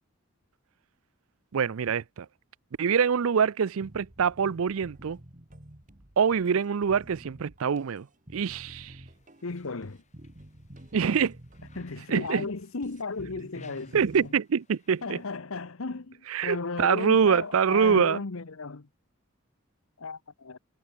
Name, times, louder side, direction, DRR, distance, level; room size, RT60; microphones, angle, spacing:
voice 1, 1.5-2.3 2.8-5.2 6.2-8.1 8.3-9.0 10.9-11.4 12.1-12.5 13.9-15.2 16.3-18.2, right 6 dB, 75° right, 0.5 m, -25 dB
sound 1, 3.8-14.3, right 1 dB, 35° right, 2.0 m, -50 dB
sound 2, 9.0-15.4, left 6 dB, 30° left, 3.3 m, -63 dB
voice 2, 9.4-10.0 11.7-14.3 15.0-18.9 20.0-20.6, left 3 dB, 75° left, 1.0 m, -35 dB
head